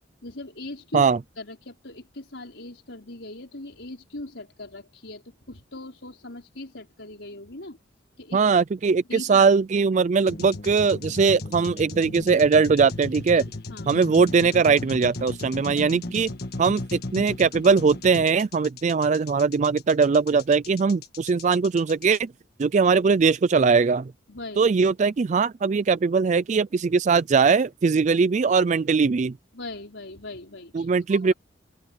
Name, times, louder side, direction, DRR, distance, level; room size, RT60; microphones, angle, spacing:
voice 1, 0.2-1.1 1.4-7.8 8.2-8.4 9.1-9.5 13.3-14.0 15.7-15.9 24.3-24.7 29.5-31.3, left 2 dB, 80° left, 5.1 m, -40 dB
voice 2, 8.3-13.4 13.9-16.3 16.6-22.3 22.6-24.1 24.6-29.3 30.7-31.3, right 5 dB, 40° right, 0.3 m, -20 dB
sound 1, 10.3-22.2, left 2 dB, 55° left, 1.7 m, -36 dB
open air
head